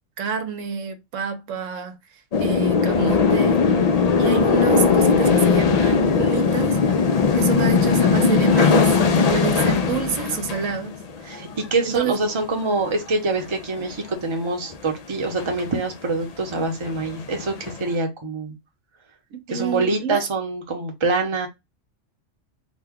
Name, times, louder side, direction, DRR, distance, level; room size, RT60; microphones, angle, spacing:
voice 1, 0.2-2.0 2.4-3.7 4.1-6.8 7.3-11.0 11.8-12.2 19.3-20.2, right 6 dB, 85° right, 1.1 m, -28 dB
sound 1, 2.3-11.8 12.1-12.4 12.7-13.0 13.3-14.0 14.7-14.9 15.2-15.8 16.2-16.3 16.5-17.8, left 5 dB, 85° left, 0.3 m, -19 dB
voice 2, 11.2-18.5 19.5-21.5, right 3 dB, 30° right, 0.7 m, -25 dB
2.9 x 2.2 x 3.5 m
omnidirectional pair, 1.3 m